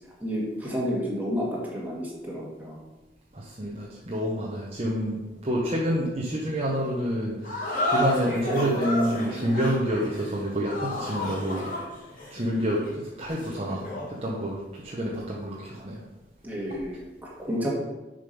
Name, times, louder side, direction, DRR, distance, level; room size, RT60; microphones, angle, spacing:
voice 1, 0.2-2.8 16.4-17.7, equal, 10° right, -5 dB, 1.8 m, -31 dB
voice 2, 3.3-5.2 5.4-11.7 12.3-16.0, equal, 35° right, -4 dB, 1.1 m, -28 dB
sound 1, 7.4-14.2, left 1 dB, 50° left, 2.3 m, -31 dB
7.1 x 5.2 x 5.4 m, 1.1 s
head